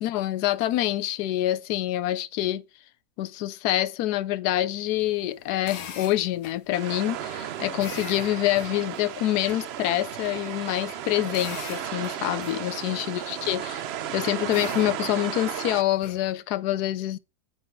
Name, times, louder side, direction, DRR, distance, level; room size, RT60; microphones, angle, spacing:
voice 1, 0.0-2.6 3.2-13.8 14.1-17.2, left 14 dB, 90° left, 1.1 m, -26 dB
sound 1, 4.9-16.3, left 8 dB, 70° left, 1.3 m, -45 dB
sound 2, 6.7-15.8, right 10 dB, 70° right, 0.6 m, -34 dB
8.9 x 3.9 x 4.5 m
omnidirectional pair, 1.6 m